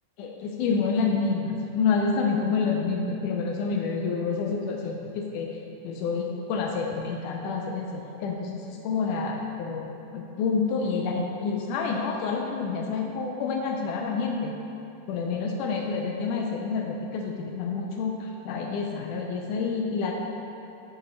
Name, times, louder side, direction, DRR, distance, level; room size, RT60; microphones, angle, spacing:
voice 1, 0.2-5.5 5.8-9.8 10.1-14.5 15.1-20.1, left 5 dB, 85° left, 1 dB, 2.1 m, -28 dB
8.2 x 6.2 x 4.3 m, 2.9 s
omnidirectional pair, 3.6 m